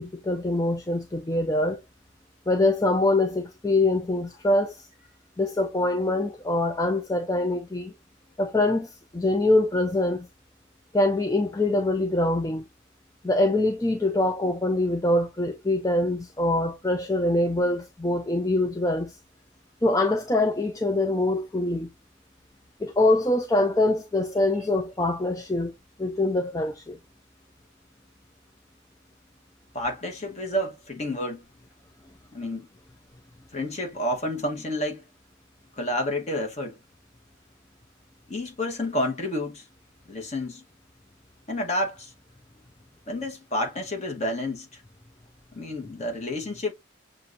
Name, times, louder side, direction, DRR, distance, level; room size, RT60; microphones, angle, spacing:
voice 1, 0.0-1.8 2.5-4.9 5.4-7.9 8.4-10.3 10.9-12.6 13.2-19.1 19.8-21.9 22.8-25.7 26.0-27.0, left 2 dB, 15° left, 0.4 m, -24 dB
voice 2, 29.7-31.4 32.3-32.7 33.5-35.0 35.8-36.8 38.3-39.6 40.1-40.6 41.5-42.1 43.1-44.8 45.5-46.7, left 1 dB, 35° left, 1.4 m, -30 dB
7.0 x 2.5 x 2.6 m
head